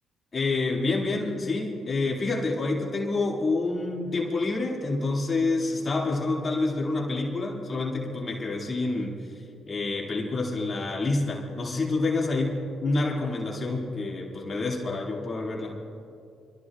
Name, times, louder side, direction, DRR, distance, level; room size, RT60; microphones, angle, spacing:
voice 1, 0.3-15.7, left 3 dB, 35° left, -2 dB, 2.3 m, -28 dB
26.0 x 14.5 x 2.4 m, 2.6 s
cardioid pair, 90°, 0 cm